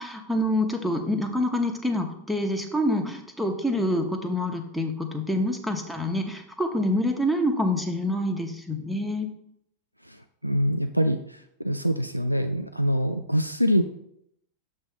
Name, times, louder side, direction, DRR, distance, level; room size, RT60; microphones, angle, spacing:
voice 1, 0.0-9.3, left 1 dB, ahead, 4 dB, 0.9 m, -26 dB
voice 2, 10.4-13.8, equal, 90° right, 8 dB, 0.3 m, -25 dB
7.1 x 3.2 x 5.5 m, 0.74 s
figure-of-eight pair, 90°, 0 cm